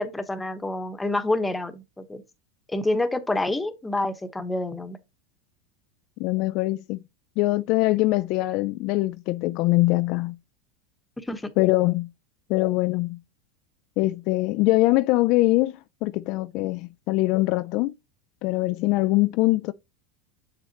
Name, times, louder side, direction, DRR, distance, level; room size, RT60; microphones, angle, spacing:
voice 1, 0.0-2.2 2.7-5.0 11.3-11.5, left 2 dB, 10° left, 1.1 m, -27 dB
voice 2, 6.2-7.0 7.4-10.3 11.6-12.1 12.5-13.2 14.0-17.9 18.4-19.7, left 19 dB, 55° left, 0.4 m, -23 dB
7.3 x 6.9 x 2.9 m
supercardioid pair, 115°, 0 cm